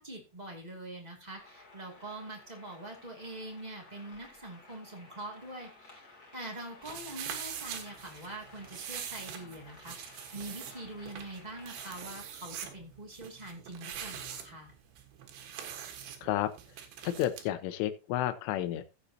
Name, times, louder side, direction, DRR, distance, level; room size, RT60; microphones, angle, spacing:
voice 1, 0.0-6.1 6.3-14.7, right 1 dB, 30° right, 0 dB, 0.8 m, -44 dB
sound 1, 1.4-12.0, left 2 dB, 25° left, 2.4 m, -55 dB
sound 2, 6.8-17.5, right 9 dB, 70° right, 3.5 m, -43 dB
voice 2, 16.2-16.5 17.0-19.0, left 12 dB, 85° left, 11 dB, 3.3 m, -31 dB
15.0 x 8.2 x 2.8 m, 0.29 s
omnidirectional pair, 5.5 m